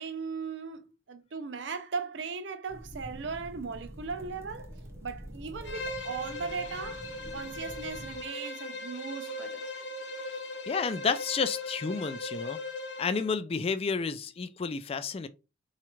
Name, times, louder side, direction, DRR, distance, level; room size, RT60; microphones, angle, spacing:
voice 1, 0.0-4.8 5.0-7.0 7.3-9.6, right 5 dB, 70° right, 0.6 m, -38 dB
sound 1, 2.7-8.2, equal, 15° right, 0.6 m, -46 dB
Bowed string instrument, 5.6-13.3, left 2 dB, 70° left, 0.7 m, -39 dB
voice 2, 10.7-12.6 13.0-15.3, left 5 dB, 30° left, 0.3 m, -31 dB
4.2 x 2.4 x 3.0 m
head